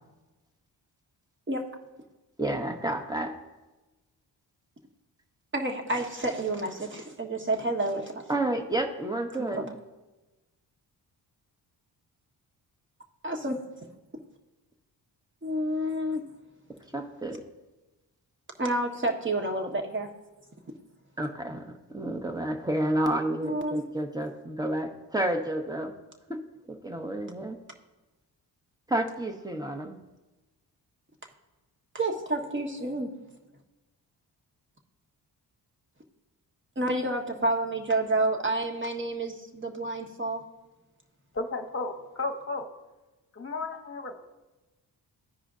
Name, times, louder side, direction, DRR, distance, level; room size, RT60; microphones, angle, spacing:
voice 1, 2.4-3.3 8.3-9.8 16.9-17.4 21.2-25.9 26.3-26.4 26.7-27.6 28.9-30.0, right 1 dB, 10° right, 5 dB, 1.1 m, -30 dB
voice 2, 5.5-8.2 9.3-9.6 13.2-13.6 15.4-16.2 18.6-20.1 23.4-23.8 31.9-33.1 36.7-40.4, right 1 dB, 25° right, 3 dB, 1.3 m, -29 dB
voice 3, 41.4-42.6 43.4-44.1, left 3 dB, 30° left, 5 dB, 1.1 m, -33 dB
14.0 x 4.9 x 2.5 m, 1.1 s
supercardioid pair, 55°, 44 cm